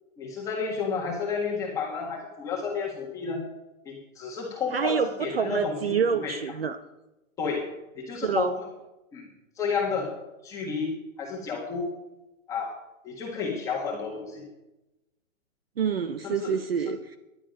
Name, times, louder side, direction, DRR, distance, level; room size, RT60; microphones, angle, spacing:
voice 1, 0.2-3.4 3.8-5.9 6.2-6.3 7.4-7.7 7.9-8.7 9.1-9.3 9.6-10.1 10.4-11.9 12.5-12.7 13.0-14.4 16.2-16.5, left 5 dB, 10° left, -2 dB, 1.6 m, -31 dB
voice 2, 4.7-6.8 8.2-8.5 15.8-17.2, right 6 dB, 45° right, 10 dB, 0.8 m, -27 dB
20.0 x 11.5 x 5.3 m, 0.99 s
hypercardioid pair, 170°, 41 cm